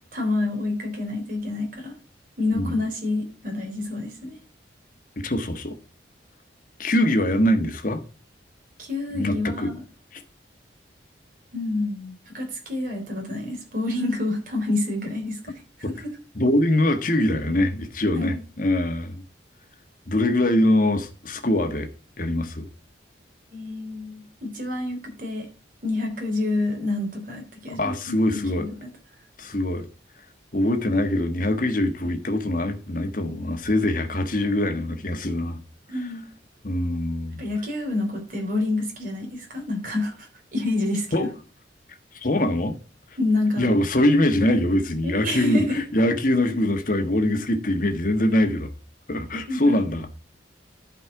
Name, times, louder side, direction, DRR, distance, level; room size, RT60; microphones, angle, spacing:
voice 1, 0.1-1.9 2.4-4.4 8.8-9.8 11.5-15.6 15.9-16.0 18.1-18.4 23.5-25.5 25.8-28.2 28.5-28.9 35.9-36.3 37.4-41.3 43.2-43.7 45.0-45.8 49.5-49.8, left 2 dB, 45° right, 3.5 m, -28 dB
voice 2, 5.2-5.8 6.8-8.0 9.1-9.7 10.1-10.2 16.3-19.2 20.1-21.9 22.2-22.7 27.7-28.7 29.4-29.9 30.5-35.6 36.6-37.4 41.1-41.3 42.2-42.8 43.6-48.7 49.1-50.1, left 1 dB, 45° left, 1.4 m, -23 dB
11.0 x 5.3 x 4.8 m
head